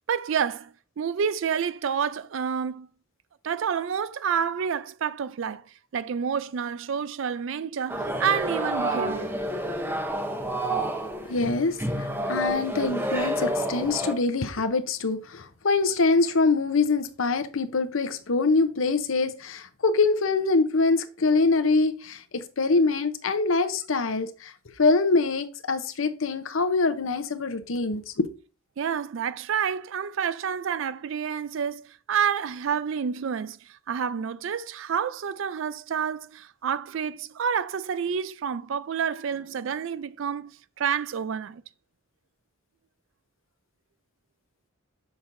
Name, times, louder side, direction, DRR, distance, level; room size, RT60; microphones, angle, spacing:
voice 1, 0.1-2.9 3.4-5.6 5.9-9.4 28.8-41.6, right 7 dB, 65° right, 0.4 m, -29 dB
sound 1, 7.9-14.1, right 1 dB, 10° right, 0.7 m, -29 dB
voice 2, 11.2-24.5 24.8-28.2, left 3 dB, 70° left, 0.7 m, -24 dB
6.9 x 6.0 x 2.6 m
head